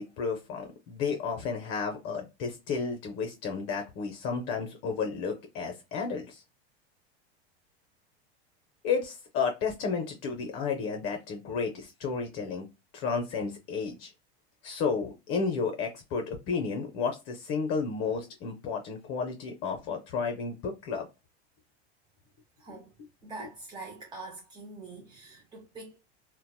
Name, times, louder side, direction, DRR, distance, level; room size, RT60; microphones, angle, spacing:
voice 1, 0.0-6.4 8.8-12.7 12.9-14.1 14.6-21.1, left 5 dB, 45° left, 0.6 m, -32 dB
voice 2, 22.6-22.9 23.2-26.0, right 3 dB, 15° right, 0.3 m, -44 dB
2.8 x 2.0 x 2.2 m
hypercardioid pair, 105°, 33 cm